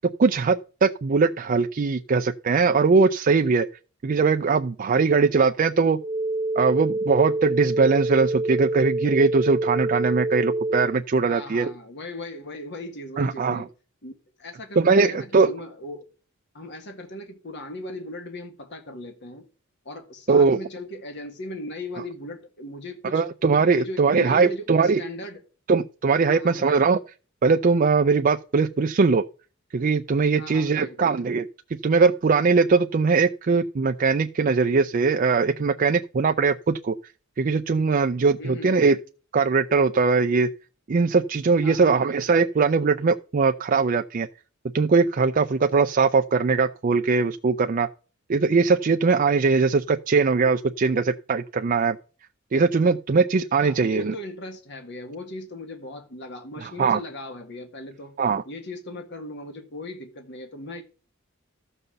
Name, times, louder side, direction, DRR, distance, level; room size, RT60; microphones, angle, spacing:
voice 1, 0.2-3.7 4.0-6.0 6.6-11.7 13.2-13.6 14.8-15.5 20.3-20.6 23.1-25.0 25.7-27.0 27.4-29.2 29.7-31.4 31.8-37.0 37.4-39.0 39.3-40.5 40.9-44.3 44.7-47.9 48.3-52.0 52.5-54.1 56.6-57.0 58.2-58.4, right 4 dB, 40° right, 0.4 m, -21 dB
sound 1, 6.0-11.0, right 2 dB, 20° right, 1.8 m, -26 dB
voice 2, 11.3-13.7 14.0-14.1 14.4-16.1 16.5-19.5 19.9-23.2 23.7-25.4 26.2-26.8 30.4-31.2 38.4-38.9 41.6-42.1 53.6-58.2 58.5-60.8, left 1 dB, 55° left, 1.6 m, -38 dB
13.5 x 5.5 x 6.8 m
head